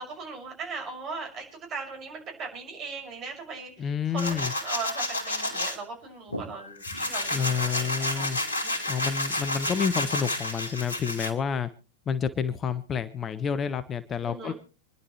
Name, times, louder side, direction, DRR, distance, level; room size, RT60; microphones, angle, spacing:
voice 1, 0.0-8.3 8.6-8.7 14.2-14.5, right 4 dB, 35° right, 2 dB, 6.2 m, -39 dB
voice 2, 3.8-4.5 7.3-8.4 8.9-11.7 12.1-14.5, left 7 dB, 25° left, 13 dB, 0.8 m, -29 dB
sound 1, 4.2-5.8 6.3-11.3, left 1 dB, 70° left, 2.7 m, -30 dB
27.5 x 11.0 x 3.2 m, 0.35 s
figure-of-eight pair, 90°, 0 cm